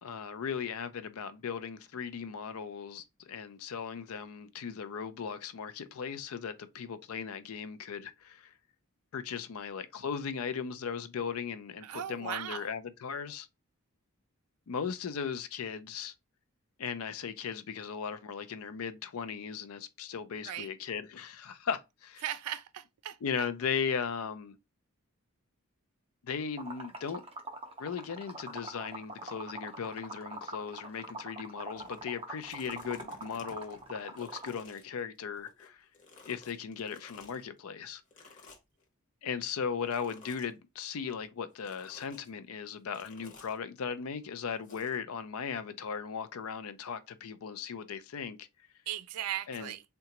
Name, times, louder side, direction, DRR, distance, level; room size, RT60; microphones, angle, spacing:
voice 1, 0.0-8.5 9.1-13.5 14.7-16.1 16.8-22.2 23.2-24.6 26.2-27.2 27.8-35.9 36.3-38.0 39.2-48.5 49.5-49.7, left 6 dB, 75° left, 0.4 m, -37 dB
voice 2, 11.8-12.7 20.4-20.7 22.2-23.5 48.9-49.8, right 11 dB, 90° right, 0.4 m, -38 dB
Liquid, 26.6-34.6, right 2 dB, 25° right, 0.5 m, -43 dB
sound 1, 31.8-32.0 32.4-35.7 35.9-37.4 38.1-38.8 39.9-40.5 41.6-42.3 42.9-43.6 44.6-45.0, left 3 dB, 35° left, 0.8 m, -54 dB
3.7 x 2.2 x 2.9 m
head